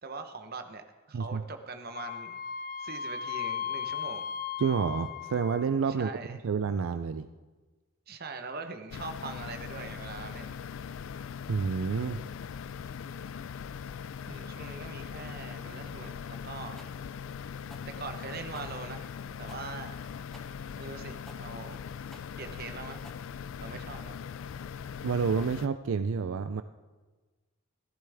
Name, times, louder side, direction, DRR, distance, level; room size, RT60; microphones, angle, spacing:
voice 1, 0.0-2.4 2.8-4.2 6.0-6.4 8.1-10.6 14.3-16.8 17.9-19.1 19.4-20.1 20.8-21.8 22.4-23.0 23.6-24.1, right 4 dB, 45° right, 7 dB, 0.9 m, -42 dB
Wind instrument woodwind instrument, 1.9-5.8, left 8 dB, 40° left, 0.7 m, -36 dB
voice 2, 4.6-7.3 11.5-12.2 25.0-26.6, right 5 dB, 75° right, 10 dB, 0.4 m, -29 dB
sound 1, 8.9-25.7, left 7 dB, 70° left, 0.3 m, -41 dB
sound 2, 16.8-23.8, equal, ahead, 1.0 m, -55 dB
15.5 x 13.5 x 3.5 m, 1.3 s
head